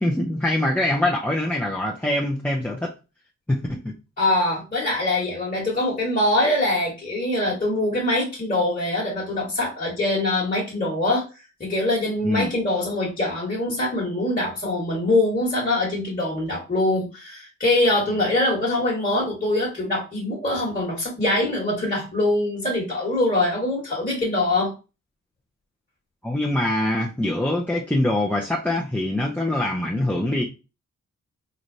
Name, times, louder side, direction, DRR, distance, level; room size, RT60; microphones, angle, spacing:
voice 1, 0.0-2.9 3.5-3.9 12.2-12.5 26.2-30.4, left 1 dB, 5° left, 0.6 m, -24 dB
voice 2, 4.2-11.2 11.6-24.7, left 1 dB, 25° left, 1.5 m, -23 dB
3.9 x 3.2 x 2.7 m
cardioid pair, 80°, 32 cm